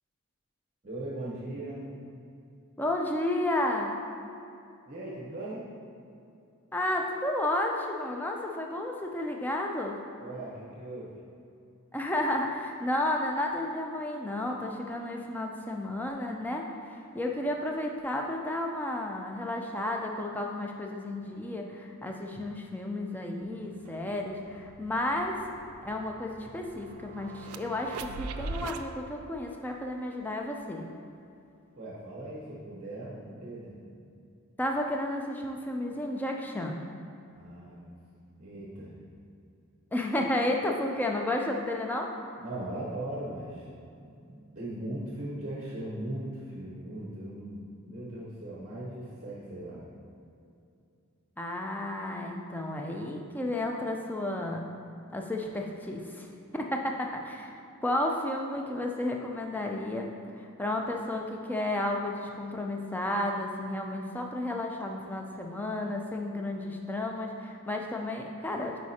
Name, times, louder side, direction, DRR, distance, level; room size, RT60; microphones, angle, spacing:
voice 1, 0.8-1.9 4.8-5.7 10.2-11.1 31.8-33.8 37.3-37.9 38.4-38.9 42.4-43.7 44.0-49.9, right 1 dB, 35° right, -6 dB, 0.9 m, -39 dB
voice 2, 2.8-4.0 6.7-10.0 11.9-25.4 25.8-30.9 34.6-36.8 39.9-42.1 51.4-54.6 55.1-56.3 56.5-68.8, left 1 dB, 10° left, 1 dB, 0.4 m, -32 dB
sound 1, 23.4-23.5 23.8-28.8, right 4 dB, 80° right, 0.3 m, -42 dB
9.4 x 4.3 x 2.8 m, 2.5 s
head